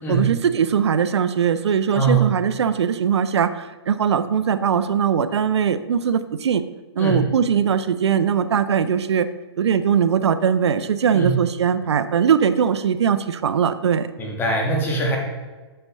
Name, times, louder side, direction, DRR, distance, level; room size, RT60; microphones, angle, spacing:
voice 1, 0.1-6.6 7.0-9.3 9.6-14.1, right 7 dB, 80° right, 13 dB, 0.5 m, -20 dB
voice 2, 1.9-2.3 7.0-7.2 11.1-11.4 14.2-15.2, right 3 dB, 15° left, -1 dB, 1.6 m, -21 dB
8.7 x 6.7 x 3.1 m, 1.3 s
hypercardioid pair, 145°, 14 cm